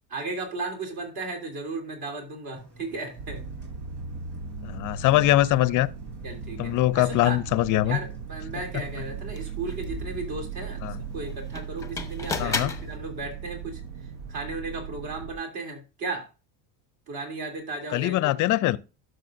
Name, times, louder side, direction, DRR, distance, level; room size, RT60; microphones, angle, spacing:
voice 1, 0.1-3.5 6.2-7.4 7.8-10.8 11.1-13.8 14.3-16.3 17.1-18.3, right 3 dB, 45° right, 3.1 m, -35 dB
Engine, 2.6-12.7, right 3 dB, 25° right, 4.4 m, -51 dB
sound 1, 3.2-15.3, right 6 dB, 75° right, 1.1 m, -38 dB
voice 2, 4.6-5.9 6.6-8.0 10.8-11.0 12.4-12.7 17.9-18.8, left 15 dB, 40° left, 0.5 m, -22 dB
sound 2, 8.8-8.9 9.3-14.5, left 4 dB, 5° left, 0.8 m, -37 dB
12.0 x 6.3 x 2.6 m
cardioid pair, 125°, 49 cm